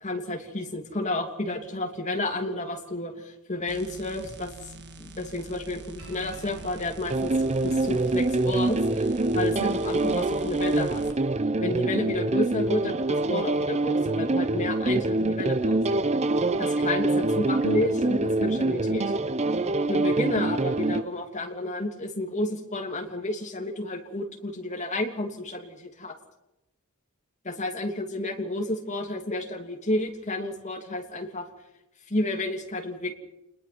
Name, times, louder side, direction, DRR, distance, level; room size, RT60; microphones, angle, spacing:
voice 1, 0.0-4.5 5.0-7.3 7.6-9.1 9.3-11.0 11.6-15.8 16.6-19.0 19.9-25.7 26.0-26.1 27.4-31.4 32.1-33.1, left 1 dB, 35° left, 2 dB, 2.9 m, -31 dB
sound 1, 3.7-11.1 14.9-15.0, right 2 dB, 55° right, 1.6 m, -45 dB
sound 2, 6.0-12.7, right 2 dB, 75° right, 7.4 m, -51 dB
sound 3, 7.1-21.0, right 2 dB, 30° right, 0.7 m, -25 dB
27.5 x 21.0 x 6.1 m, 0.91 s
head